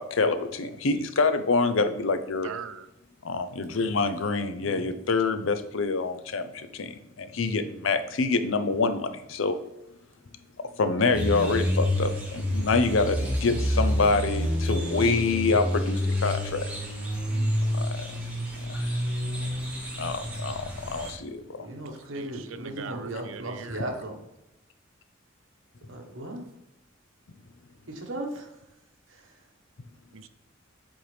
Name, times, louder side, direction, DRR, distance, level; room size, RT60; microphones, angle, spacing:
voice 1, 0.0-2.5 3.2-9.6 10.6-16.7 17.8-18.0 18.7-18.9 20.0-21.7, left 3 dB, 70° left, 10 dB, 0.6 m, -26 dB
voice 2, 2.4-2.9 22.1-23.8 30.1-30.3, right 6 dB, 85° right, 11 dB, 0.6 m, -41 dB
voice 3, 4.6-4.9 17.3-17.5 21.6-24.1 25.9-26.4 27.9-28.5 29.1-29.3, right 1 dB, 70° right, 2 dB, 1.3 m, -36 dB
sound 1, 11.1-21.1, equal, 5° right, 1.6 m, -28 dB
7.7 x 4.3 x 3.4 m, 0.90 s
head